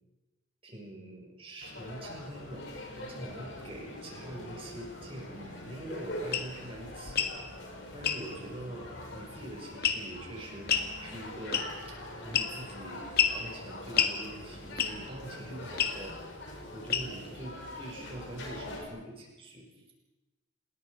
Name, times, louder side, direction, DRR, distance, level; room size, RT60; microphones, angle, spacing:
voice 1, 0.6-2.7 3.0-7.5 7.9-10.7 11.0-13.0 13.3-16.2 16.7-19.7, right 1 dB, 30° right, 0 dB, 6.4 m, -44 dB
sound 1, 1.6-18.8, left 1 dB, 70° left, 6.8 m, -43 dB
sound 2, 6.3-6.5 7.1-7.4 8.0-8.2 9.8-10.2 10.7-10.9 11.5-11.9 12.3-12.7 13.2-13.4 14.0-14.2 14.8-15.1 15.8-16.0 16.9-17.3, left 8 dB, 55° left, 1.7 m, -28 dB
27.5 x 21.0 x 5.2 m, 1.1 s
head